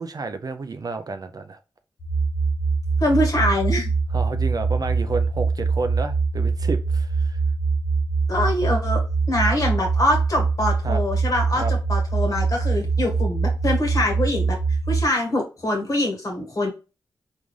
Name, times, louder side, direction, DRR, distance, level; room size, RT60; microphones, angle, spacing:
voice 1, 0.0-1.6 4.1-7.4 10.8-11.0 11.5-11.7, right 3 dB, 45° right, 0.4 m, -30 dB
sound 1, 2.0-15.0, right 4 dB, 70° left, 0.8 m, -23 dB
voice 2, 3.0-3.9 8.3-9.0 9.3-14.6 14.9-16.7, left 1 dB, 40° left, 1.4 m, -24 dB
3.7 x 2.4 x 3.1 m
cardioid pair, 55°, 9 cm